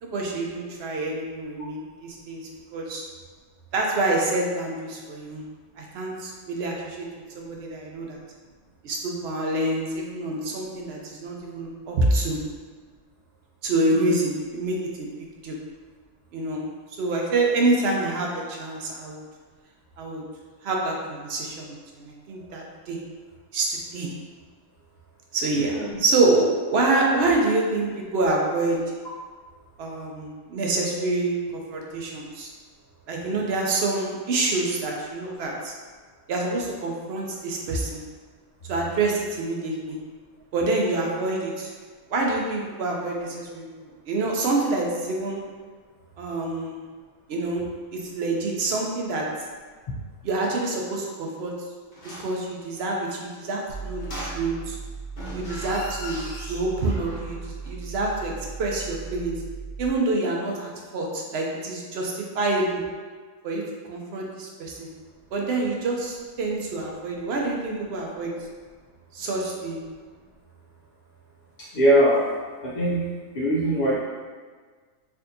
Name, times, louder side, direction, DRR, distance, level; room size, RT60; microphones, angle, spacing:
voice 1, 0.0-2.4 2.7-3.0 3.7-5.4 5.8-7.1 7.3-8.2 8.8-12.4 13.6-15.1 15.4-15.6 16.3-16.6 17.0-19.2 20.0-20.2 20.6-23.0 23.5-24.1 25.3-28.8 29.8-32.5 33.1-35.7 36.3-38.0 38.7-40.0 40.5-41.7 42.1-43.7 44.1-45.4 46.2-46.9 47.3-47.6 47.9-49.3 50.2-51.5 52.2-54.8 55.3-58.3 58.6-59.4 59.8-62.8 63.4-63.6 63.9-64.9 65.3-68.3 69.1-69.8, right 2 dB, 60° right, -1 dB, 0.7 m, -26 dB
voice 2, 25.5-25.9 71.7-72.2 72.6-74.0, right 1 dB, 65° left, -7 dB, 0.4 m, -22 dB
sound 1, 51.9-52.4 54.0-54.8 55.1-57.4 57.6-57.7, equal, 35° left, 1.0 m, -38 dB
sound 2, 53.7-59.9, right 5 dB, 85° left, 1.2 m, -37 dB
4.3 x 2.7 x 2.6 m, 1.5 s
omnidirectional pair, 1.4 m